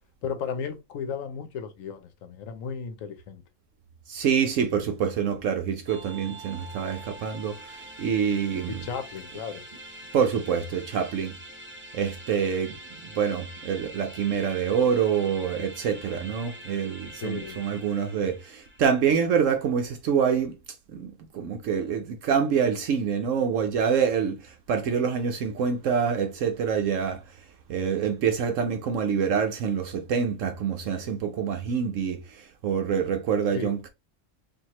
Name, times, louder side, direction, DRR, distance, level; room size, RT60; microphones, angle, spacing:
voice 1, 0.2-3.4 8.7-9.6 17.2-17.6 18.2-18.3 33.5-33.7, left 6 dB, 70° left, 1.0 m, -35 dB
voice 2, 4.1-7.6 8.0-8.9 10.1-11.3 11.9-12.8 13.1-20.6 20.9-27.2 27.7-33.9, right 7 dB, 70° right, 0.9 m, -26 dB
sound 1, 5.9-19.0, right 1 dB, 10° right, 0.6 m, -44 dB
4.5 x 2.7 x 2.9 m
omnidirectional pair, 1.5 m